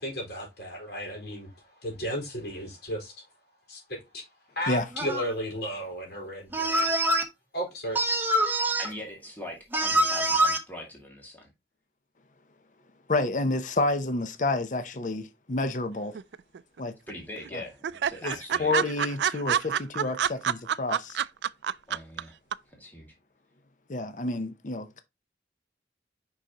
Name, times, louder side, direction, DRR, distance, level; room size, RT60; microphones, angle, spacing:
voice 1, 0.0-3.1 3.7-4.2 4.5-6.9 7.5-8.0, equal, 70° left, 4.1 m, -34 dB
sound 1, 4.9-5.3 6.5-7.2 7.9-8.9 9.7-10.6, right 1 dB, 10° right, 0.9 m, -24 dB
voice 2, 8.8-11.5 17.1-18.7 21.9-22.4 22.7-23.1, left 1 dB, 10° left, 2.1 m, -41 dB
voice 3, 13.1-16.2 16.8-16.9 17.5-17.6 18.2-18.3 18.6-21.2 23.9-25.0, left 2 dB, 45° left, 0.7 m, -29 dB
sound 2, 16.1-16.8 17.1-17.2 17.4-17.5 17.8-22.2 22.5-22.6, right 8 dB, 75° right, 0.3 m, -27 dB
6.4 x 5.6 x 2.9 m
head